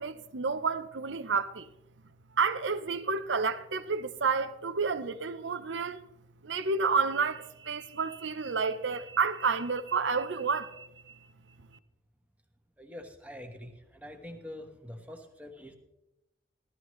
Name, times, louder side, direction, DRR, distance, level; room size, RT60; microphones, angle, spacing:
voice 1, 0.0-1.7 2.4-6.0 6.4-10.9, right 5 dB, 75° right, 0.7 m, -30 dB
voice 2, 12.8-15.8, left 1 dB, 10° right, 1.1 m, -45 dB
16.0 x 12.5 x 3.1 m
head